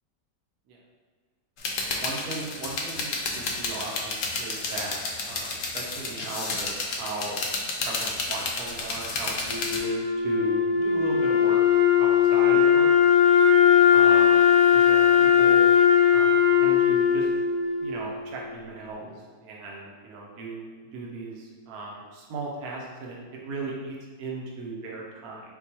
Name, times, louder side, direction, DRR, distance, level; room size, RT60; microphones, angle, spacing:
sound 1, 1.6-9.8, left 3 dB, 65° left, 0.8 m, -31 dB
voice 1, 1.8-5.0 5.2-6.7 7.0-11.6 12.0-12.9 13.9-14.4 14.7-15.6 16.1-17.3 17.8-25.4, right 3 dB, 65° right, -2 dB, 1.2 m, -37 dB
Wind instrument woodwind instrument, 9.5-18.5, left 8 dB, 25° left, 0.7 m, -19 dB
4.5 x 2.3 x 4.1 m, 1.5 s
omnidirectional pair, 1.9 m